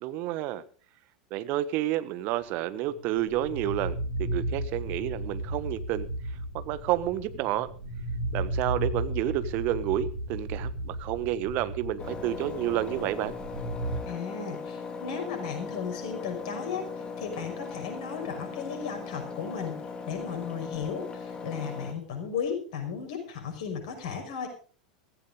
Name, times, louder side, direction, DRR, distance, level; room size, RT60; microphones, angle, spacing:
voice 1, 0.0-0.6 1.3-6.1 6.5-7.7 8.3-13.3, right 13 dB, 45° right, 14 dB, 1.2 m, -30 dB
sound 1, 2.9-13.9, right 1 dB, 65° right, 6.6 m, -34 dB
Engine, 12.0-21.9, left 4 dB, 20° left, 2.6 m, -39 dB
voice 2, 14.1-19.8 20.1-24.5, left 6 dB, 55° left, 4 dB, 5.8 m, -35 dB
15.5 x 15.5 x 3.7 m, 0.40 s
figure-of-eight pair, 85°, 4 cm